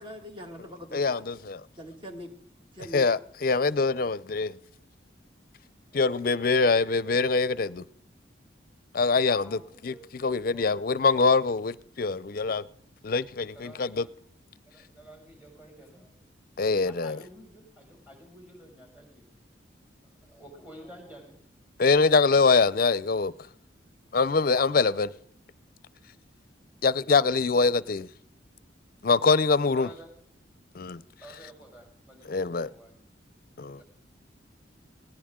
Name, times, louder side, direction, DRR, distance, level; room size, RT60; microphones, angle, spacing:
voice 1, 0.0-1.3 1.8-2.3 2.7-3.1, equal, 30° right, 2.0 m, -42 dB
voice 2, 0.9-1.6 2.9-4.5 5.9-7.8 8.9-9.9 10.2-12.6 13.0-14.0 16.6-17.2 21.8-23.3 24.1-25.1 26.8-28.1 29.0-29.9 30.7-31.0 32.3-32.7 33.6-33.8, left 4 dB, 50° left, 0.5 m, -24 dB
voice 3, 5.9-6.6 9.3-10.0 10.5-10.8 13.5-14.1 14.6-16.3 16.8-19.2 20.0-21.4 25.1-25.2 26.7-26.8 29.7-30.1 31.2-33.0 33.8-33.9, equal, 10° right, 6.1 m, -51 dB
19.0 x 17.5 x 3.7 m
head